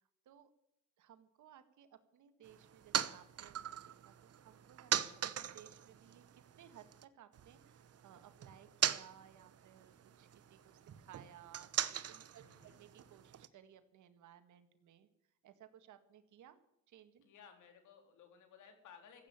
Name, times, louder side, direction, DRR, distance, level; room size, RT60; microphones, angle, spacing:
voice 1, 1.0-4.9 5.3-10.6 11.0-15.1 15.4-16.6 16.9-17.2, right 10 dB, 75° right, 10 dB, 1.8 m, -60 dB
sound 1, 2.4-7.1 7.3-13.5, right 9 dB, 55° right, 1.1 m, -41 dB
voice 2, 12.4-12.8 17.2-19.3, left 7 dB, 80° left, 5 dB, 3.8 m, -59 dB
15.5 x 8.7 x 8.9 m, 0.82 s
cardioid pair, 90°, 30 cm